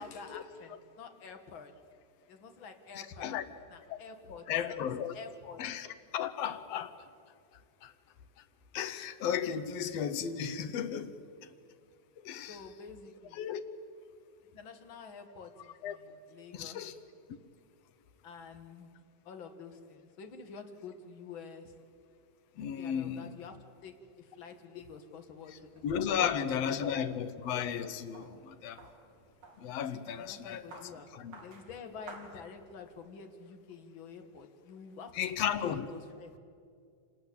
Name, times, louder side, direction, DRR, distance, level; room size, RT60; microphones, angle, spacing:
voice 1, 0.0-1.7 2.3-3.4 3.7-4.5 5.1-5.6 12.3-13.4 14.5-16.8 18.2-18.9 19.2-21.7 22.5-27.2 30.2-31.1 31.4-36.4, left 5 dB, 45° left, 1.7 m, -48 dB
voice 2, 4.5-5.1 5.6-5.9 6.1-7.0 7.8-7.9 8.7-11.1 11.4-11.5 12.2-12.6 13.3-13.6 15.8-16.0 16.5-16.9 22.6-23.3 25.8-28.8 29.6-30.8 31.1-31.3 35.1-35.8, left 8 dB, 80° left, 1.4 m, -34 dB
sound 1, 25.4-33.0, right 3 dB, 55° right, 4.9 m, -55 dB
26.5 x 20.0 x 8.6 m
omnidirectional pair, 4.2 m